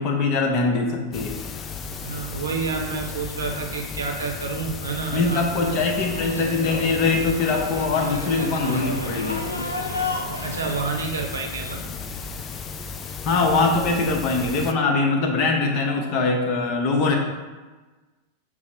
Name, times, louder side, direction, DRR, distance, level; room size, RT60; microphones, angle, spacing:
voice 1, 0.0-1.3 5.1-9.4 13.2-17.2, left 3 dB, 40° left, 2 dB, 0.7 m, -22 dB
sound 1, 1.1-14.7, left 5 dB, 25° left, 0.3 m, -35 dB
voice 2, 2.0-5.4 10.4-11.9, right 4 dB, 70° right, 2 dB, 0.6 m, -29 dB
sound 2, 5.6-10.8, left 2 dB, 85° left, 0.5 m, -31 dB
5.8 x 2.0 x 4.2 m, 1.3 s
figure-of-eight pair, 90°, 0 cm